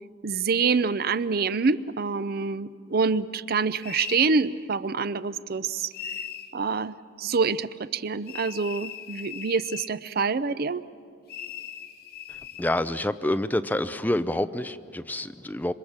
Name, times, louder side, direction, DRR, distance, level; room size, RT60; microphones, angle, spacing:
voice 1, 0.2-5.9 6.5-10.8, right 4 dB, 55° right, 15 dB, 0.5 m, -26 dB
sound 1, 3.8-4.3 5.9-6.5 8.3-10.0 11.3-12.7, left 9 dB, 55° left, 1.3 m, -38 dB
voice 2, 12.3-15.7, left 1 dB, 10° left, 11 dB, 0.5 m, -28 dB
27.0 x 24.0 x 7.4 m, 2.4 s
head